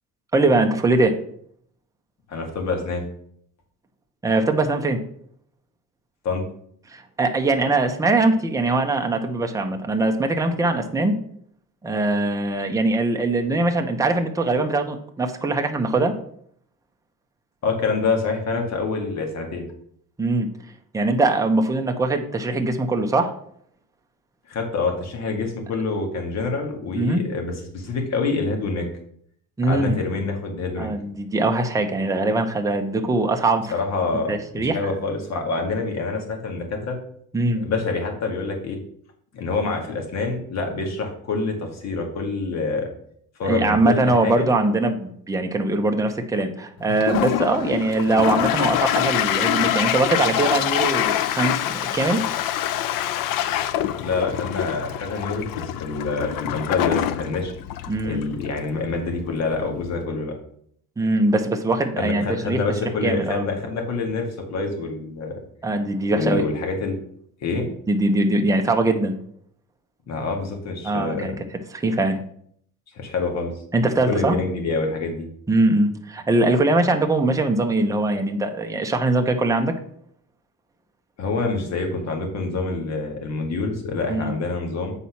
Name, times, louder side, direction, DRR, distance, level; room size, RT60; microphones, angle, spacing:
voice 1, 0.3-1.1 4.2-5.0 6.9-11.1 11.8-16.1 20.2-20.5 20.9-23.3 26.9-27.3 29.6-30.0 30.8-33.7 34.3-34.8 37.3-37.6 43.4-52.2 57.9-58.2 61.0-62.6 63.0-63.4 65.6-66.5 67.9-69.2 70.8-71.3 71.7-72.2 73.7-74.4 75.5-79.8 84.1-84.3, right 2 dB, 10° right, 4 dB, 0.7 m, -21 dB
voice 2, 2.3-3.0 6.2-6.4 17.6-19.7 24.5-28.9 29.6-30.9 33.7-37.0 37.6-38.8 39.3-42.9 43.4-44.5 54.0-57.5 58.1-60.3 62.0-65.3 66.1-67.0 67.4-67.7 70.1-71.4 72.9-73.5 74.1-75.3 81.2-84.9, left 3 dB, 50° left, 3 dB, 1.9 m, -26 dB
Toilet flush, 46.9-60.0, left 11 dB, 75° left, 0.6 m, -25 dB
8.0 x 4.2 x 5.8 m, 0.65 s
cardioid pair, 150°, 34 cm